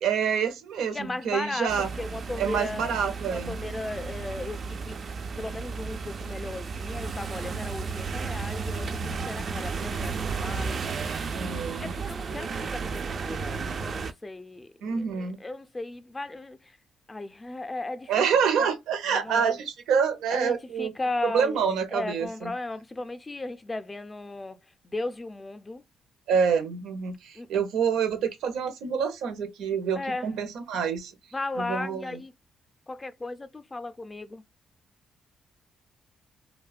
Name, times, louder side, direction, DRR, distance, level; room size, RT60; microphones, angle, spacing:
voice 1, 0.0-1.9 2.4-3.5 11.3-11.9 14.8-15.4 18.1-20.9 21.2-22.5 26.3-31.1 31.6-32.2, right 6 dB, 80° right, 0.6 m, -27 dB
voice 2, 0.9-5.0 5.4-11.1 11.8-16.8 17.1-18.2 18.6-18.7 19.1-19.5 20.3-24.6 24.8-25.8 27.4-27.5 30.0-30.3 31.3-32.3 32.9-34.4, left 2 dB, 20° left, 0.4 m, -36 dB
sound 1, 1.7-14.1, right 5 dB, 50° right, 0.3 m, -33 dB
2.7 x 2.2 x 2.3 m
cardioid pair, 90°, 0 cm